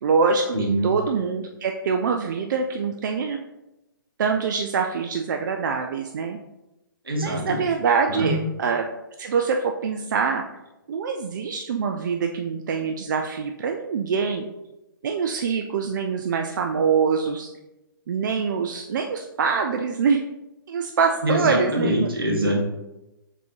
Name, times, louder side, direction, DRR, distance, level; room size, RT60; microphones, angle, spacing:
voice 1, 0.0-0.4 0.8-3.4 4.2-6.4 7.2-8.9 9.2-10.4 10.9-14.4 15.0-17.5 18.1-20.2 20.7-22.1, right 5 dB, 60° right, 4 dB, 0.4 m, -24 dB
voice 2, 0.5-0.9 7.0-7.6 8.1-8.3 21.2-22.6, right 1 dB, 85° right, -1 dB, 1.1 m, -24 dB
3.7 x 3.7 x 3.1 m, 0.97 s
hypercardioid pair, 135°, 12 cm